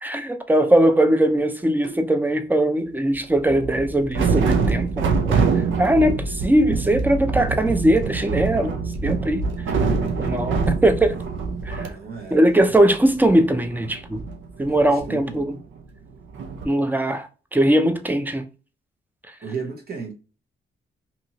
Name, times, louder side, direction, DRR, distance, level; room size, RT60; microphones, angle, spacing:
voice 1, 0.0-5.5 5.8-8.7 9.0-9.4 10.2-11.1 11.7-11.9 12.3-14.2 14.6-15.6 16.6-18.5, right 1 dB, 10° right, 0.6 m, -20 dB
sound 1, 1.8-2.0 3.3-11.9 12.2-12.3 12.5-15.8 16.3-16.7, right 4 dB, 80° right, 0.6 m, -25 dB
voice 2, 11.8-12.7 14.7-15.4 19.4-20.1, right 5 dB, 50° right, 1.0 m, -34 dB
2.8 x 2.5 x 2.8 m
cardioid pair, 65°, 20 cm